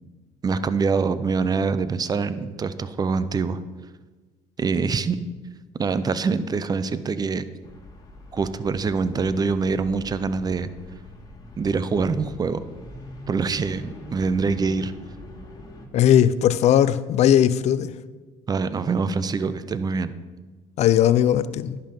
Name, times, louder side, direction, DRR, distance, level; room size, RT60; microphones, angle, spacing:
voice 1, 0.4-3.6 4.6-5.2 5.8-7.4 8.3-10.7 11.6-12.6 13.3-14.9 18.5-20.1, right 4 dB, 30° right, 0.6 m, -24 dB
sound 1, 7.6-15.9, left 1 dB, 30° left, 1.7 m, -42 dB
voice 2, 15.9-17.9 20.8-21.8, left 10 dB, 60° left, 0.5 m, -18 dB
10.5 x 5.6 x 5.2 m
supercardioid pair, 80°, 13 cm